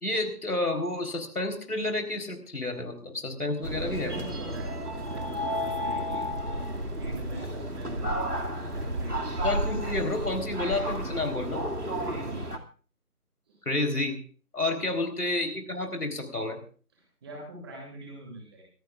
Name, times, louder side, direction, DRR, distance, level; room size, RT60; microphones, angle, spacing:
voice 1, 0.0-4.1 9.4-11.6 13.7-14.2 14.5-16.6, left 2 dB, 70° left, 5 dB, 4.1 m, -30 dB
voice 2, 3.6-6.3 7.0-8.2 8.7-9.2 12.0-12.4 13.5-13.6 14.8-14.9 16.9-18.6, right 1 dB, 15° right, -2 dB, 7.4 m, -43 dB
sound 1, 3.6-12.6, equal, 75° right, 2.6 m, -32 dB
25.0 x 17.0 x 2.5 m, 0.40 s
figure-of-eight pair, 165°, 46 cm